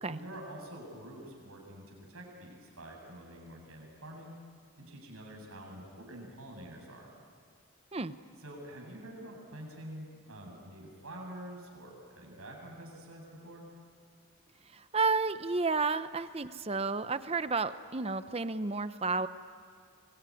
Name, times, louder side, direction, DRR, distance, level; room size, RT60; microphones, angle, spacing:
voice 1, 0.1-4.3 4.8-7.1 8.4-13.6, right 1 dB, 80° right, 0 dB, 7.5 m, -47 dB
voice 2, 14.7-19.3, right 4 dB, 25° right, 12 dB, 0.7 m, -31 dB
26.0 x 22.5 x 9.9 m, 2.1 s
head